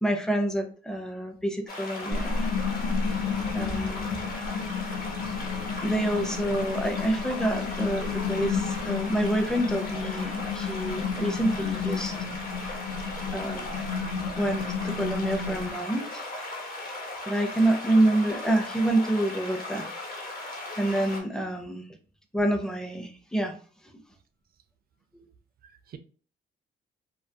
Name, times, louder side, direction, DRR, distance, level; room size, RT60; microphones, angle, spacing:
voice 1, 0.0-2.4 3.5-4.1 5.8-12.1 13.3-13.7 14.4-16.3 17.2-19.9 20.8-21.9 22.3-23.5, right 1 dB, 5° left, 0.5 m, -27 dB
sound 1, 1.7-21.2, left 2 dB, 45° left, 0.8 m, -37 dB
sound 2, 2.1-15.7, left 5 dB, 80° left, 0.5 m, -31 dB
voice 2, 3.4-3.8 4.1-4.2 5.2-5.3 25.6-26.0, right 7 dB, 50° right, 0.4 m, -43 dB
2.3 x 2.2 x 2.6 m
cardioid pair, 90°, 20 cm